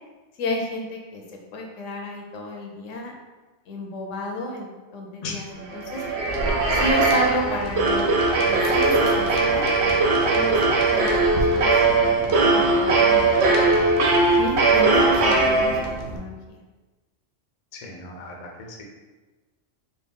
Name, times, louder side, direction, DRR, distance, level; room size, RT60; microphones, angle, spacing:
voice 1, 0.4-1.2 1.5-3.1 3.7-6.0 6.7-8.1 8.5-9.9 10.2-10.6 10.9-13.7 14.4-16.6, left 2 dB, 75° left, 1 dB, 1.0 m, -31 dB
sound 1, 5.7-16.2, right 3 dB, 65° right, 0.8 m, -20 dB
voice 2, 17.7-18.8, left 3 dB, 45° left, 0 dB, 0.5 m, -36 dB
4.3 x 2.3 x 3.6 m, 1.2 s
omnidirectional pair, 1.3 m